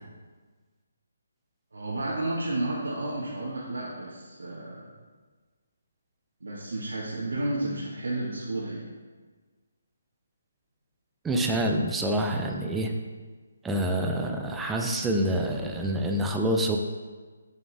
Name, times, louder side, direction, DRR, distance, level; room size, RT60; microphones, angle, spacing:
voice 1, 1.7-4.9 6.4-8.8, right 2 dB, 90° right, -5 dB, 1.4 m, -32 dB
voice 2, 11.2-12.9 13.6-16.8, right 1 dB, 5° right, 2 dB, 0.5 m, -27 dB
6.8 x 6.4 x 3.4 m, 1.4 s
hypercardioid pair, 160°, 0 cm